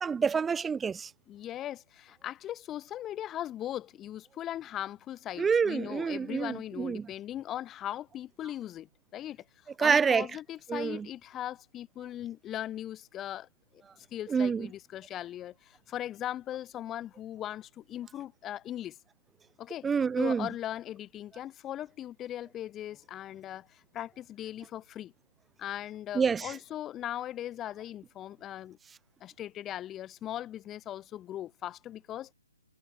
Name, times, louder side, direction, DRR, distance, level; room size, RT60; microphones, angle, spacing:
voice 1, 0.0-1.1 5.4-7.1 9.8-10.3 10.7-11.1 14.3-14.7 19.8-20.5 26.1-26.6, right 6 dB, 10° right, 1.4 m, -27 dB
voice 2, 1.3-9.4 9.8-13.5 14.1-19.0 19.6-19.9 20.2-25.1 25.6-28.8 29.2-32.3, left 12 dB, 15° left, 2.1 m, -39 dB
hypercardioid pair, 150°, 0 cm